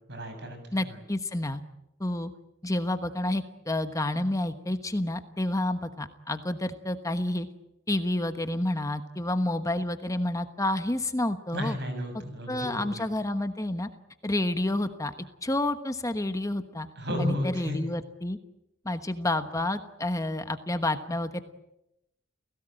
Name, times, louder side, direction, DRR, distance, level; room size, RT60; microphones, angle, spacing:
voice 1, 0.1-0.6 0.9-1.0 11.5-13.0 17.0-17.8, left 1 dB, 60° right, 6 dB, 7.3 m, -32 dB
voice 2, 0.7-1.6 2.0-2.3 2.6-7.5 7.9-11.8 12.5-13.9 14.2-15.1 15.4-16.9 17.2-18.4 18.8-21.4, left 1 dB, 15° left, 9 dB, 1.2 m, -29 dB
30.0 x 17.5 x 9.0 m, 0.88 s
head